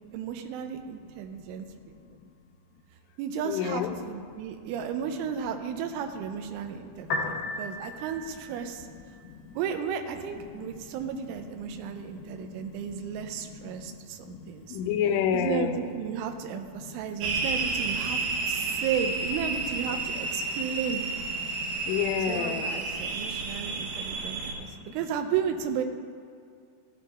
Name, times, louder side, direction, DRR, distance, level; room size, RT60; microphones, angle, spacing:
voice 1, 0.1-2.2 3.2-8.9 9.5-14.8 15.3-21.0 22.3-25.8, right 8 dB, 90° right, 6 dB, 3.1 m, -34 dB
voice 2, 3.5-4.0 10.6-10.7 11.2-11.4 11.8-11.9 12.3-12.6 13.4-13.5 14.7-15.8 16.1-16.2 17.1-17.2 18.1-18.3 21.4-22.7, left 8 dB, 85° left, 6 dB, 3.1 m, -29 dB
Piano, 7.0-20.0, left 2 dB, 60° left, 2.4 m, -43 dB
sound 1, 17.2-24.5, right 3 dB, 70° right, 2.7 m, -31 dB
15.0 x 11.5 x 2.4 m, 2.3 s
omnidirectional pair, 5.5 m